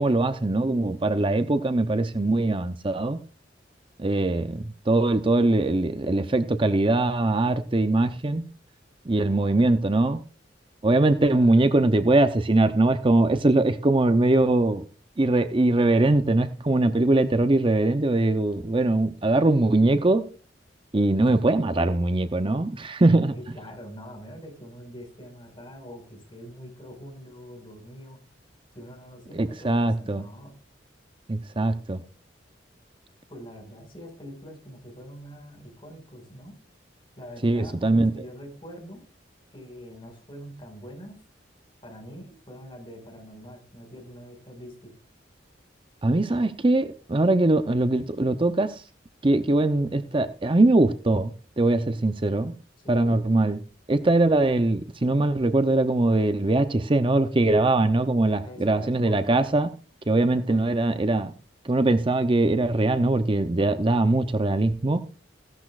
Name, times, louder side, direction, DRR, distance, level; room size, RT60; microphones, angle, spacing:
voice 1, 0.0-3.2 4.0-8.5 9.1-10.2 10.8-14.8 15.2-20.2 20.9-23.3 29.4-30.2 31.3-32.0 37.4-38.1 46.0-48.8 49.2-52.5 52.9-53.6 53.9-59.7 60.1-61.3 61.6-65.0, right 2 dB, 30° right, 0.6 m, -22 dB
voice 2, 11.3-11.7 23.2-28.2 28.7-30.5 33.3-36.6 37.2-39.0 39.5-41.2 41.8-44.9 52.8-53.2 58.4-59.3 60.3-60.6, equal, 30° left, 5.3 m, -44 dB
16.5 x 12.0 x 2.4 m
head